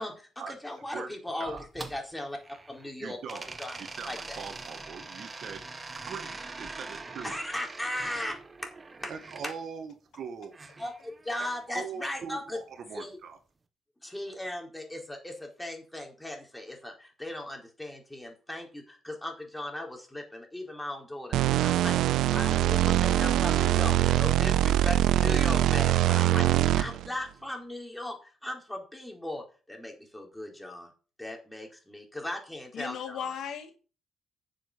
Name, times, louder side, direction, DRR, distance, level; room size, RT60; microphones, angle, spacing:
voice 1, 0.0-2.4 2.7-3.8 4.1-4.4 7.2-8.7 9.0-9.1 9.4-9.5 10.8-10.9 11.3-12.6 12.9-13.2 14.0-26.5 26.8-30.9 31.2-33.3, left 1 dB, 10° left, 4.6 m, -38 dB
sound 1, 1.5-2.9 3.3-9.4 10.5-11.7, right 3 dB, 25° right, 1.5 m, -43 dB
voice 2, 3.0-3.5 3.8-7.3 9.1-10.5 11.4-13.4, right 6 dB, 65° right, 2.0 m, -41 dB
sound 2, 21.3-27.1, right 13 dB, 80° right, 0.4 m, -23 dB
voice 3, 32.7-33.7, left 8 dB, 75° left, 2.3 m, -36 dB
10.0 x 7.3 x 7.0 m
cardioid pair, 90°, 0 cm